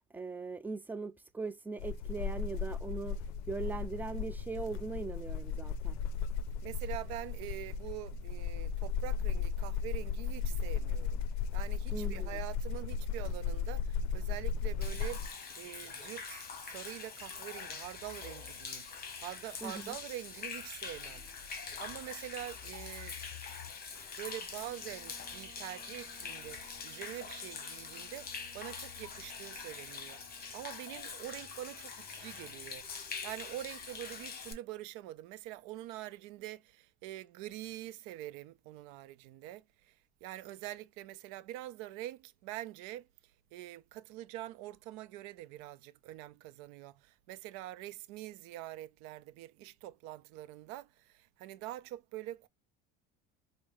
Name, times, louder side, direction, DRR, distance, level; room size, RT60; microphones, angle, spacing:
voice 1, 0.1-6.0 11.9-12.4 19.6-20.0, right 4 dB, 5° right, 0.4 m, -40 dB
sound 1, 1.8-15.3, left 6 dB, 65° left, 0.5 m, -36 dB
voice 2, 6.6-11.2 11.5-23.1 24.2-39.9 40.2-43.1 43.5-52.5, right 15 dB, 85° right, 0.6 m, -45 dB
Human voice / Rain / Stream, 14.8-34.5, left 6 dB, 30° left, 1.0 m, -44 dB
sound 2, 24.6-31.3, right 5 dB, 30° right, 0.9 m, -61 dB
4.8 x 2.1 x 2.6 m
cardioid pair, 125°, 30 cm